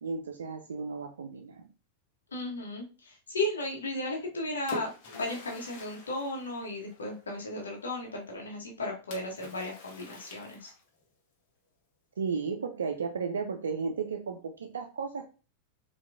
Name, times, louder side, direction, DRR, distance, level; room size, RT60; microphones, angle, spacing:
voice 1, 0.0-1.7 12.2-15.3, right 5 dB, 70° right, 3 dB, 0.4 m, -34 dB
voice 2, 2.3-10.7, left 2 dB, 70° left, 0 dB, 0.8 m, -35 dB
Splash splatter, 4.1-7.3 9.1-11.0, left 2 dB, 45° left, 1.0 m, -45 dB
4.3 x 2.2 x 2.3 m, 0.34 s
figure-of-eight pair, 90°, 0 cm